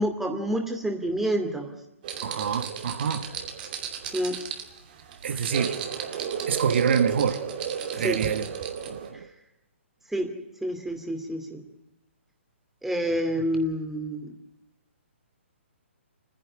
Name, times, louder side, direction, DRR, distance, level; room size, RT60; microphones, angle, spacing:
voice 1, 0.0-1.7 4.1-4.4 5.3-5.4 8.0-8.2 10.1-10.3 10.6-11.6 12.8-14.3, equal, 5° right, 2.6 m, -28 dB
sound 1, 2.0-9.1, right 7 dB, 45° right, 2.6 m, -33 dB
voice 2, 2.2-3.3 5.2-5.8 6.5-7.4 7.9-8.5 8.8-9.3, right 7 dB, 60° right, 1.6 m, -26 dB
28.5 x 10.5 x 9.8 m
hypercardioid pair, 140°, 7 cm